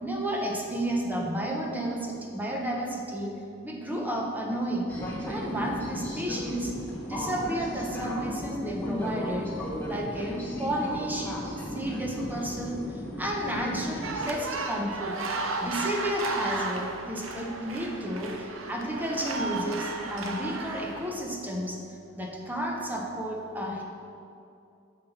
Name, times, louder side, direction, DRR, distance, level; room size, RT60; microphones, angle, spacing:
voice 1, 0.0-3.3 3.6-4.9 5.3-6.7 7.1-9.5 9.8-15.2 15.6-21.8 22.1-23.8, right 1 dB, 10° right, -1 dB, 1.1 m, -32 dB
sound 1, 4.9-14.3, left 1 dB, 10° left, 1.6 m, -35 dB
sound 2, 14.0-21.1, right 3 dB, 85° right, 0.8 m, -34 dB
7.4 x 6.1 x 5.7 m, 2.6 s
head